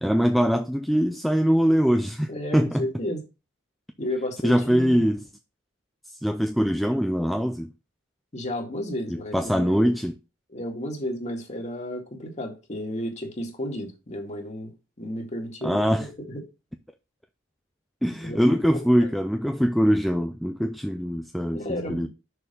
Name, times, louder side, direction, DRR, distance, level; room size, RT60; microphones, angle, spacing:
voice 1, 0.0-2.9 4.4-5.2 6.2-7.7 9.1-10.2 15.6-16.1 18.0-22.1, equal, ahead, 0.4 m, -23 dB
voice 2, 2.3-3.2 4.0-5.0 8.3-9.9 10.5-14.7 15.0-16.4 18.2-18.5 19.0-19.1 21.5-22.1, left 1 dB, 35° left, 1.9 m, -32 dB
6.4 x 4.4 x 5.2 m
head